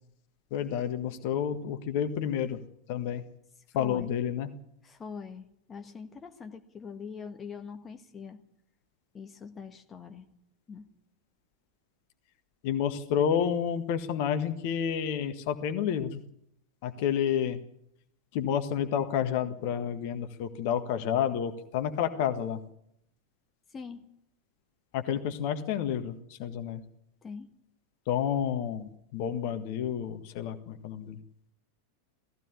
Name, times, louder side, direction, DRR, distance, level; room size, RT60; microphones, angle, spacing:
voice 1, 0.5-2.6 2.9-3.2 3.7-4.5 12.6-16.2 16.8-17.6 18.3-22.6 24.9-26.8 28.1-31.2, left 9 dB, 45° left, 9 dB, 1.6 m, -30 dB
voice 2, 3.8-4.1 4.8-8.4 9.1-10.3 10.7-10.9 23.7-24.1 27.2-27.5, left 5 dB, 20° left, 5 dB, 1.6 m, -43 dB
17.5 x 15.5 x 9.9 m, 0.75 s
figure-of-eight pair, 90°, 0 cm